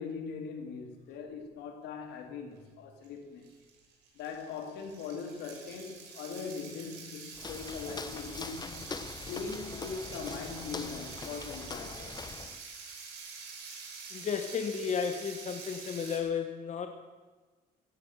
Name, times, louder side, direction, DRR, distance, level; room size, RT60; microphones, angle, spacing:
voice 1, 0.0-3.4 4.1-8.8 9.3-12.2, left 5 dB, 85° left, 4 dB, 3.1 m, -41 dB
sound 1, 3.0-3.1 3.4-16.2, right 5 dB, 80° right, 6.2 m, -46 dB
Walk footsteps, 7.3-12.6, left 4 dB, 25° left, 1.0 m, -42 dB
voice 2, 14.1-16.9, left 6 dB, 45° left, 6 dB, 1.7 m, -33 dB
16.0 x 11.5 x 7.5 m, 1.3 s
cardioid pair, 110°, 17 cm